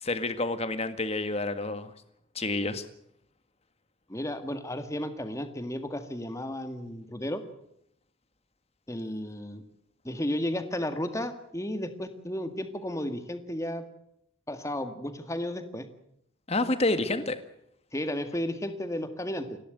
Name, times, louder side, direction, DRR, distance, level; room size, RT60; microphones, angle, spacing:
voice 1, 0.0-1.9 2.4-2.8 16.5-17.4, left 2 dB, 30° left, 10 dB, 1.8 m, -28 dB
voice 2, 4.1-7.4 8.9-9.6 10.0-13.9 14.5-15.9 17.9-19.6, left 1 dB, 15° left, 8 dB, 1.9 m, -33 dB
29.5 x 12.0 x 9.3 m, 0.74 s
head